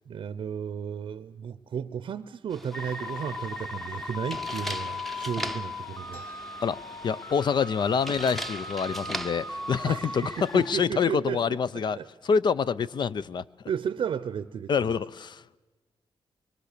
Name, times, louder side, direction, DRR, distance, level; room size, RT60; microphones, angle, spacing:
voice 1, 0.1-6.2 9.8-10.1 10.5-11.6 11.9-12.1 13.7-14.7, right 8 dB, 65° right, 0.7 m, -33 dB
sound 1, 2.5-10.8, equal, ahead, 0.8 m, -40 dB
sound 2, 2.7-10.7, left 2 dB, 20° left, 1.3 m, -38 dB
sound 3, 6.1-7.7 8.0-8.1 8.4-9.0 9.6-9.8 10.5-10.7 11.1-11.6, left 3 dB, 80° left, 4.2 m, -57 dB
voice 2, 7.0-12.0 12.2-13.4 14.7-15.4, left 6 dB, 55° left, 0.6 m, -26 dB
24.0 x 23.0 x 6.8 m
cardioid pair, 90°, 9 cm